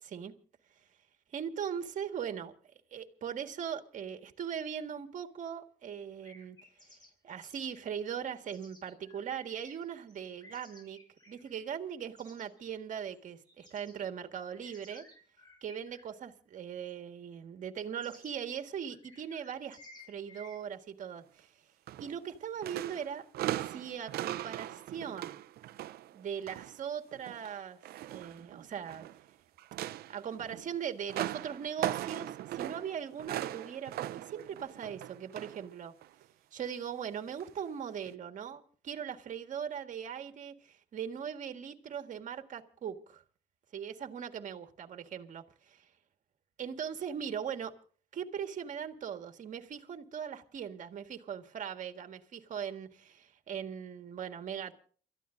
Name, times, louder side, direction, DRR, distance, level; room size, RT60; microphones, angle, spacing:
voice 1, 0.0-0.3 1.3-2.5 2.9-6.6 7.2-11.0 11.3-15.1 15.6-19.8 20.1-21.5 22.0-23.3 23.6-25.4 26.1-27.8 28.1-29.1 30.1-35.9 36.5-43.2 43.7-45.9 46.6-47.7 48.1-54.7, right 8 dB, 50° right, 1.7 m, -40 dB
sound 1, 6.2-7.1 7.4-7.7 8.5-12.7 13.1-14.1 14.5-16.2 16.9-17.0 18.0-18.3 18.9-20.6, left 1 dB, 25° left, 7.6 m, -57 dB
sound 2, 21.9-22.3 22.6-26.8 27.1-29.2 29.6-35.7 36.0-36.2 37.3-37.5 38.1-38.2, right 14 dB, 70° right, 0.6 m, -39 dB
29.0 x 14.0 x 2.6 m
cardioid pair, 110°, 17 cm